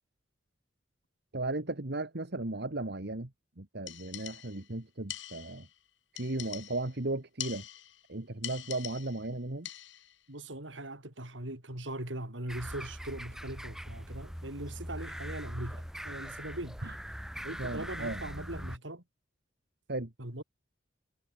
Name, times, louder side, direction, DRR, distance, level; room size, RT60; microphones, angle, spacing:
voice 1, 1.3-3.3 3.6-5.7 6.2-7.6 8.1-9.7 16.8-16.9 17.6-18.2 19.9-20.1, right 2 dB, 60° right, 1.8 m, -35 dB
sound 1, 3.9-4.7 5.1-5.7 6.2-7.0 7.4-8.1 8.4-9.3 9.7-10.2, left 12 dB, 70° left, 4.6 m, -44 dB
voice 2, 10.3-16.8 17.4-19.0 20.2-20.4, right 1 dB, 75° right, 5.2 m, -40 dB
sound 2, 12.5-18.8, equal, 5° right, 4.2 m, -41 dB
head